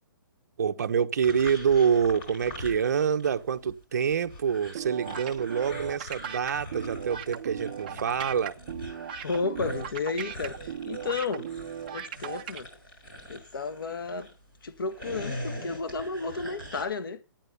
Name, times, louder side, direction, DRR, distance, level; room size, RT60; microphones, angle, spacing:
voice 1, 0.6-8.6, right 7 dB, 45° right, 0.9 m, -26 dB
sound 1, 1.2-3.4 3.7-14.3 14.8-16.8, left 1 dB, 25° left, 4.9 m, -42 dB
sound 2, 4.7-12.6, right 9 dB, 25° right, 0.6 m, -38 dB
voice 2, 9.2-11.5 11.9-12.7 13.3-14.3 14.6-17.2, left 4 dB, 65° left, 1.5 m, -32 dB
11.5 x 9.4 x 6.8 m
hypercardioid pair, 175°, 12 cm